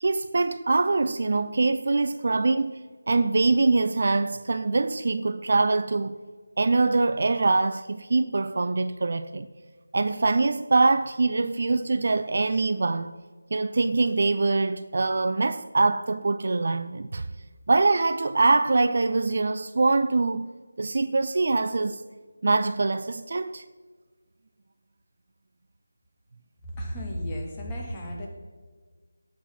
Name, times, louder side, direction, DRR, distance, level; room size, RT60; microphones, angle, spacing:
voice 1, 0.0-2.8 3.1-6.2 6.6-9.5 9.9-13.1 13.5-17.3 17.7-20.5 20.8-22.0 22.4-23.6, right 3 dB, 45° right, 0.4 m, -23 dB
voice 2, 26.6-28.3, equal, 15° left, 1.9 m, -33 dB
16.5 x 6.2 x 6.0 m
figure-of-eight pair, 160°, 0 cm